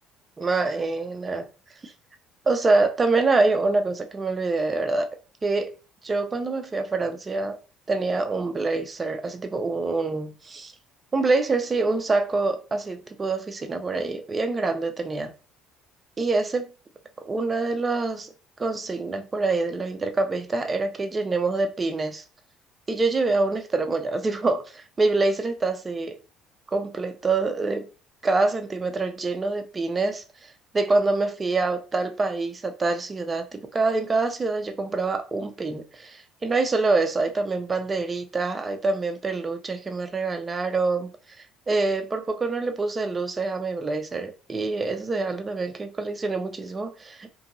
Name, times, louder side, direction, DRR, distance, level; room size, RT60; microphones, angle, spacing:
voice 1, 0.4-1.5 1.8-1.9 2.5-5.2 5.4-5.8 6.0-7.6 7.9-10.7 11.1-15.3 16.2-16.7 17.3-18.3 18.6-22.2 22.9-26.2 26.7-27.9 28.2-41.1 41.7-47.3, right 3 dB, 20° right, 0.4 m, -25 dB
2.9 x 2.6 x 2.5 m
cardioid pair, 155°, 0 cm